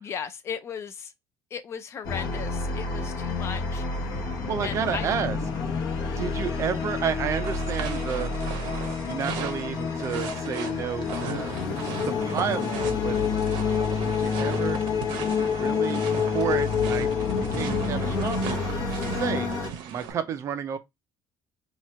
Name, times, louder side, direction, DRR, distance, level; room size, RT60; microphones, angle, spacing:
voice 1, 0.0-1.1 1.5-3.9 4.6-5.1, left 7 dB, 35° left, 0.4 m, -36 dB
sound 1, 2.0-19.7, left 5 dB, 55° left, 0.9 m, -28 dB
voice 2, 4.2-5.4 6.2-8.3 9.0-11.6 12.0-13.2 14.0-14.8 15.4-18.6 19.2-19.5 19.9-20.8, right 8 dB, 35° right, 0.5 m, -31 dB
sound 2, 7.4-20.1, right 8 dB, 75° right, 0.7 m, -38 dB
2.9 x 2.4 x 4.3 m
cardioid pair, 165°, 8 cm